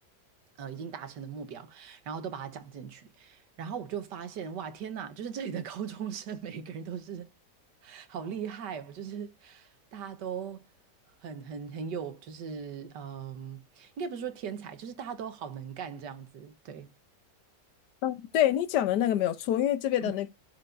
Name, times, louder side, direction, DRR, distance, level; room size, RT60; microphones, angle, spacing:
voice 1, 0.6-7.3 7.8-10.6 11.2-16.9 20.0-20.1, right 7 dB, 85° right, 1.7 m, -39 dB
voice 2, 18.0-20.3, left 11 dB, 80° left, 1.3 m, -26 dB
13.0 x 4.6 x 2.5 m
omnidirectional pair, 1.8 m